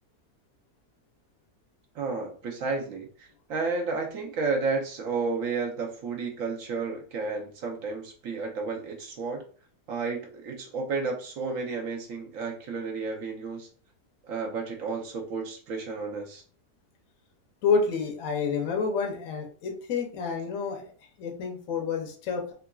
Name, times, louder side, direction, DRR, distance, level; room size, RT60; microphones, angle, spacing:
voice 1, 1.9-9.4 9.9-13.7 14.2-16.4, right 4 dB, 65° right, 1 dB, 1.0 m, -32 dB
voice 2, 17.6-20.9 21.2-22.5, left 5 dB, 65° left, 1 dB, 0.9 m, -29 dB
3.8 x 2.4 x 2.2 m, 0.43 s
omnidirectional pair, 1.7 m